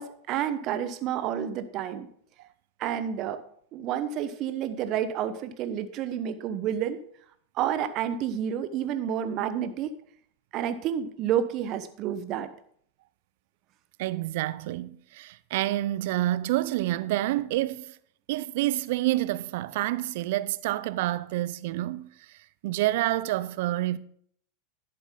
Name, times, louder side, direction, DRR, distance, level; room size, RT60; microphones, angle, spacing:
voice 1, 0.0-2.1 2.8-3.4 3.7-7.0 7.6-9.9 10.5-12.5, right 9 dB, 45° right, 1.0 m, -30 dB
voice 2, 14.0-17.9 18.3-22.1 22.6-24.0, right 16 dB, 60° right, 0.5 m, -28 dB
11.0 x 8.0 x 3.8 m
hypercardioid pair, 90°, 0 cm